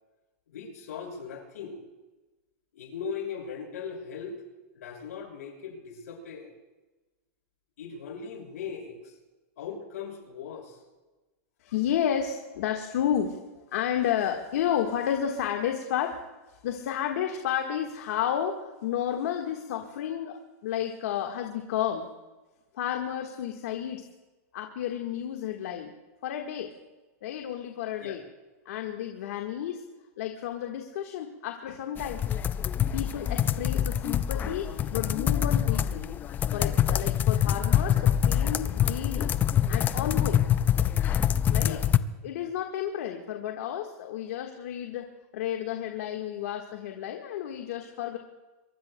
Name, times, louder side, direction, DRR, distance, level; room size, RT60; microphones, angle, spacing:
voice 1, 0.5-1.8 2.7-4.4 4.7-6.5 7.8-9.1 9.6-10.8 28.0-28.2 41.6-41.8, left 6 dB, 85° left, 0 dB, 6.1 m, -39 dB
voice 2, 11.6-13.4 13.7-16.2 16.6-22.1 22.7-24.1 24.5-25.9 26.2-26.7 27.2-28.2 28.6-29.8 30.2-32.2 32.9-36.1 36.5-39.4 39.7-40.4 41.5-41.8 42.2-45.1 45.3-48.2, left 10 dB, 70° left, 3 dB, 1.5 m, -31 dB
sound 1, 32.0-42.0, left 10 dB, 20° left, 0.4 m, -25 dB
23.0 x 23.0 x 2.2 m, 1.2 s
supercardioid pair, 140°, 8 cm